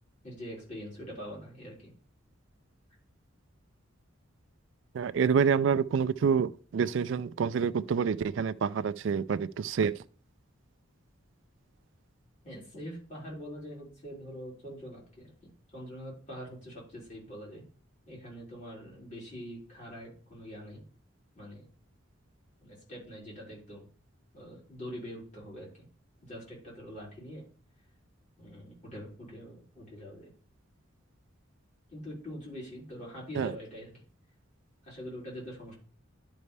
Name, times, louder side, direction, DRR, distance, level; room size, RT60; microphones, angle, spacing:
voice 1, 0.2-1.9 12.4-15.3 15.7-17.6 18.1-20.8 21.3-21.7 22.6-23.9 24.3-25.9 26.2-27.5 28.4-30.3 31.9-34.0 34.8-35.7, equal, 35° left, 4.2 m, -44 dB
voice 2, 4.9-10.0 33.3-33.5, right 6 dB, 65° right, 0.3 m, -27 dB
11.0 x 5.4 x 3.3 m
head